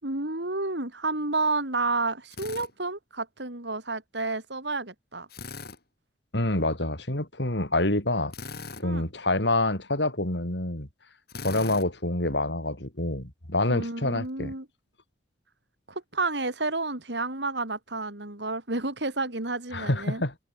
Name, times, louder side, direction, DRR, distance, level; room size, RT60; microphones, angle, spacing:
voice 1, 0.0-5.3 8.8-9.1 13.7-14.7 15.9-20.2, right 3 dB, 70° right, 3.7 m, -30 dB
Drill, 2.3-2.7 5.3-5.8 8.3-8.9 11.3-11.9, left 4 dB, 60° left, 5.4 m, -39 dB
voice 2, 6.3-8.3 8.8-10.9 11.4-14.5 19.7-20.4, left 2 dB, 75° left, 5.3 m, -27 dB
head